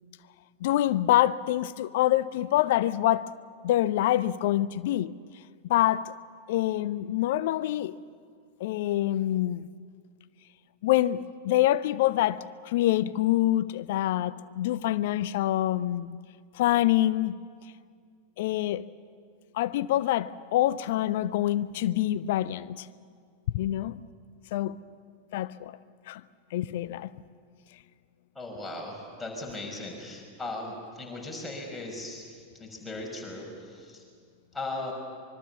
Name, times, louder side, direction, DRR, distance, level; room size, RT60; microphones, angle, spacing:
voice 1, 0.6-3.3 3.6-5.1 5.7-6.1 6.5-7.9 8.6-9.7 10.8-16.2 16.6-17.4 18.4-18.8 19.5-22.9 23.5-24.0 24.5-24.7 25.3-25.8 26.1-26.2 26.5-27.1, left 14 dB, 55° left, 0.6 m, -26 dB
voice 2, 28.4-33.5 33.7-34.0 34.5-34.9, left 2 dB, 10° left, 5.6 m, -38 dB
25.0 x 23.0 x 7.1 m
figure-of-eight pair, 90°, 0 cm